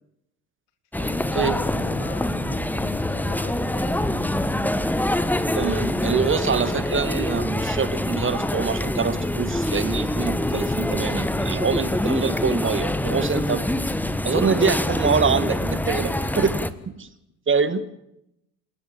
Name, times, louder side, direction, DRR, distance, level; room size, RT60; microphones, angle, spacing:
sound 1, 0.9-16.7, left 1 dB, 5° left, 1.3 m, -25 dB
voice 1, 1.0-4.1, left 8 dB, 65° left, 9 dB, 2.9 m, -41 dB
voice 2, 5.5-13.6 14.2-17.1 17.5-17.8, right 5 dB, 25° right, 13 dB, 1.7 m, -25 dB
29.0 x 13.0 x 8.8 m, 0.81 s
figure-of-eight pair, 60°, 47 cm